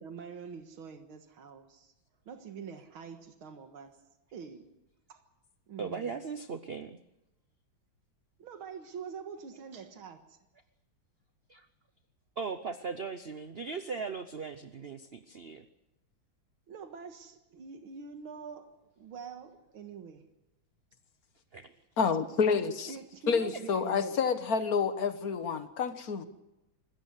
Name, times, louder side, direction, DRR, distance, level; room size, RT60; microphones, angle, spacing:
voice 1, 0.0-1.9 2.3-3.9 4.3-4.7 5.1-5.2 5.7-6.2 8.4-10.4 16.7-18.7 19.0-20.2 22.9-24.2, right 6 dB, 85° right, 2.4 m, -45 dB
voice 2, 5.8-7.0 11.5-11.7 12.4-15.6 21.5-21.7, right 5 dB, 65° right, 0.6 m, -38 dB
voice 3, 22.0-22.9 23.3-26.2, left 5 dB, 50° left, 1.6 m, -29 dB
25.0 x 14.5 x 8.2 m
omnidirectional pair, 2.2 m